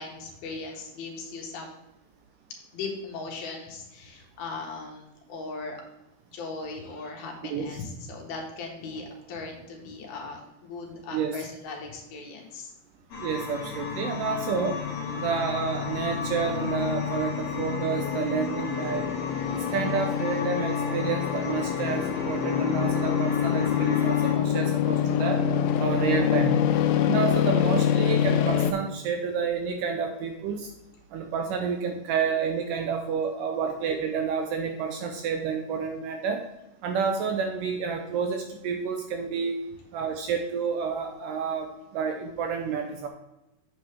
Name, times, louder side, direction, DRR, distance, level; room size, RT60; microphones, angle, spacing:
voice 1, 0.0-1.8 2.7-5.8 6.3-12.7 15.0-15.2 24.3-24.4, left 3 dB, 75° left, 1 dB, 3.2 m, -38 dB
sound 1, 13.1-24.3, left 4 dB, 45° left, 2.4 m, -35 dB
voice 2, 13.2-14.8 15.2-19.1 19.7-25.4 25.8-26.6 27.0-30.7 31.1-36.4 36.8-39.6 39.9-41.7 41.9-43.1, right 6 dB, 80° right, 4 dB, 2.0 m, -29 dB
sound 2, 13.8-28.7, left 9 dB, 90° left, 2.6 m, -26 dB
8.2 x 7.7 x 3.5 m, 0.95 s
omnidirectional pair, 4.4 m